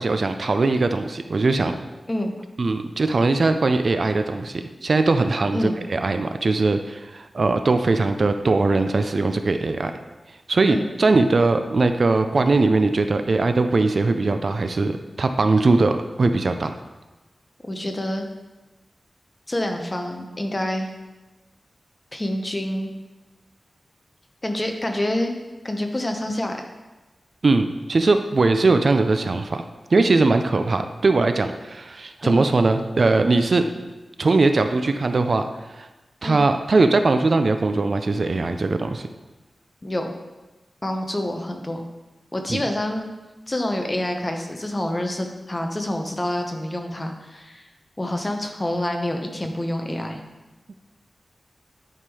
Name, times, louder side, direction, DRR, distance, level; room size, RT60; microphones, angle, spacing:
voice 1, 0.0-1.8 2.6-9.9 10.5-16.7 27.4-29.6 29.9-33.7 34.2-35.5 35.8-35.9 36.2-39.1 42.5-42.6, right 3 dB, 55° right, 7 dB, 0.4 m, -20 dB
voice 2, 17.6-18.3 19.5-20.9 22.1-22.9 24.4-25.3 25.6-26.7 29.9-30.1 32.2-32.4 36.2-36.4 39.8-40.1 40.8-41.8 42.3-43.1 43.5-47.6 48.0-50.2, left 1 dB, 25° left, 4 dB, 0.9 m, -27 dB
10.0 x 3.7 x 4.8 m, 1.1 s
wide cardioid pair, 100°, 0 cm